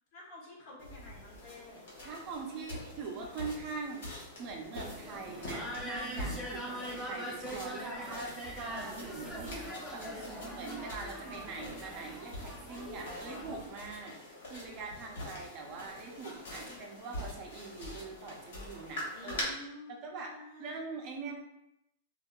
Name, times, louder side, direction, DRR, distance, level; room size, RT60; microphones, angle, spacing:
voice 1, 0.1-1.8 16.5-17.0 19.1-20.0 20.3-20.8, left 2 dB, 45° left, -3 dB, 0.8 m, -50 dB
sound 1, 0.8-19.4, left 1 dB, 75° left, 0.8 m, -45 dB
voice 2, 2.0-4.1 4.4-9.6 9.9-10.0 10.5-19.5 20.0-21.3, right 4 dB, 35° right, 1 dB, 0.4 m, -43 dB
sound 2, 4.7-13.7, equal, ahead, 0.7 m, -42 dB
2.6 x 2.2 x 2.2 m, 0.84 s
supercardioid pair, 160°, 0 cm